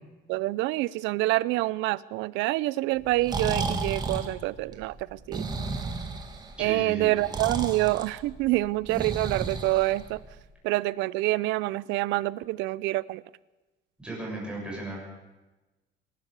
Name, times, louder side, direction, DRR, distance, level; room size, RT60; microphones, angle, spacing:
voice 1, 0.3-5.4 6.6-10.2 10.6-13.2, right 19 dB, 80° right, 0.7 m, -27 dB
Breathing, 3.0-10.4, right 4 dB, 20° right, 1.8 m, -33 dB
voice 2, 6.6-7.1 14.0-15.0, right 2 dB, 5° right, 7.2 m, -35 dB
25.5 x 12.0 x 8.3 m
cardioid pair, 170°, 19 cm